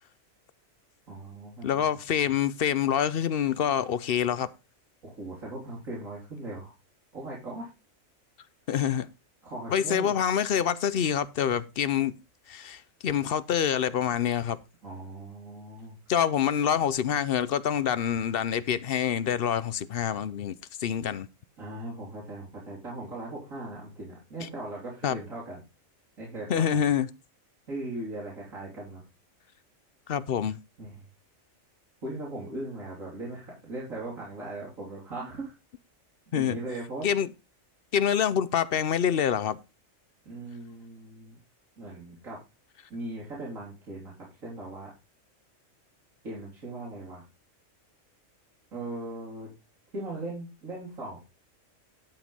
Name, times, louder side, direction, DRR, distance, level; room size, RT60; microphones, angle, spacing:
voice 1, 1.1-1.9 5.0-6.7 7.1-7.7 9.4-10.2 14.8-16.0 21.6-25.6 26.2-26.8 27.7-29.0 30.8-31.0 32.0-35.5 36.3-37.1 40.3-41.4 41.8-42.4 42.9-44.1 44.4-44.9 46.2-47.2 48.7-49.5 49.9-51.2, right 2 dB, 80° right, 3.7 m, -39 dB
voice 2, 1.6-4.5 8.7-9.1 9.7-12.2 12.5-14.6 16.1-21.3 24.4-24.5 25.0-25.2 26.5-27.1 30.1-30.6 36.3-36.6 37.0-37.3 37.9-39.6, left 8 dB, 55° left, 0.7 m, -26 dB
12.0 x 5.2 x 5.4 m
omnidirectional pair, 1.4 m